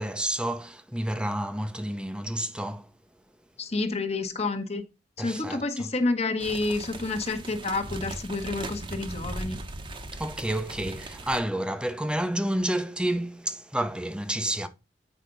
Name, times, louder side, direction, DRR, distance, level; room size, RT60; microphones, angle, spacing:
voice 1, 0.0-2.9 5.2-5.9 10.1-14.7, right 1 dB, 5° right, 0.7 m, -30 dB
voice 2, 3.6-4.8 5.2-9.6, left 3 dB, 35° left, 1.1 m, -29 dB
sound 1, 6.4-11.4, right 2 dB, 30° right, 1.0 m, -38 dB
8.3 x 5.0 x 3.9 m
head